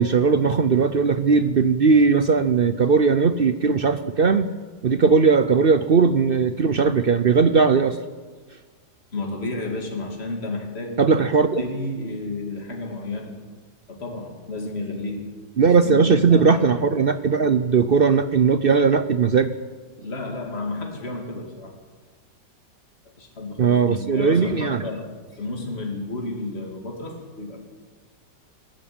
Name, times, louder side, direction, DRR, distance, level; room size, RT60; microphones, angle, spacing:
voice 1, 0.0-4.5 4.8-8.0 11.0-11.6 15.6-19.5 23.6-24.8, right 5 dB, 60° right, 11 dB, 0.6 m, -18 dB
voice 2, 9.1-11.2 11.6-13.4 13.9-15.3 15.8-16.6 20.0-21.8 23.2-25.1 25.4-27.6, left 2 dB, 35° left, 1 dB, 3.1 m, -31 dB
19.5 x 15.0 x 8.8 m, 1.4 s
omnidirectional pair, 1.9 m